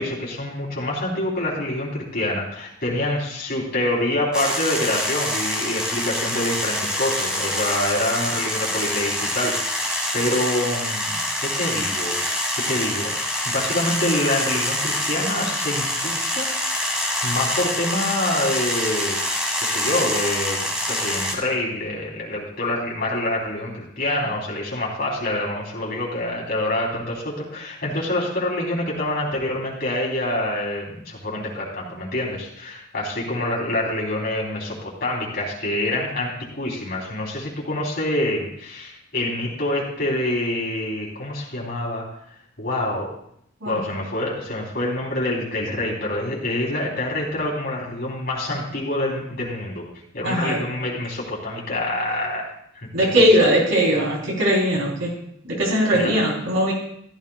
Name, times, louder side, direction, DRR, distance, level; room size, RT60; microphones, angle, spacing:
voice 1, 0.0-12.2 12.6-13.2 13.4-16.5 17.2-19.2 19.6-42.1 42.6-43.1 43.7-49.9 50.1-52.9 55.9-56.2, left 1 dB, 45° left, -3 dB, 3.7 m, -26 dB
sound 1, 4.3-21.3, left 1 dB, 5° right, 1.8 m, -26 dB
voice 2, 50.2-50.6 52.9-55.1 55.5-56.7, equal, 70° right, -2 dB, 3.8 m, -19 dB
14.5 x 13.0 x 2.4 m, 0.73 s
head